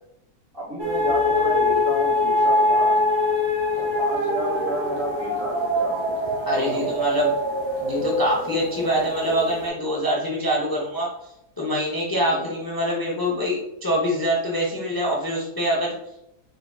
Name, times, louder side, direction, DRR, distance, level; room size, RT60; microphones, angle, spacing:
voice 1, 0.5-3.2 3.7-6.3 6.5-6.8 12.2-12.5, equal, 35° right, -5 dB, 1.9 m, -31 dB
sound 1, 0.8-9.7, left 1 dB, 80° right, 1.3 m, -23 dB
voice 2, 6.5-7.3 7.8-11.1 11.6-15.9, equal, 30° left, -4 dB, 0.4 m, -24 dB
4.6 x 3.9 x 2.3 m, 0.82 s
omnidirectional pair, 1.7 m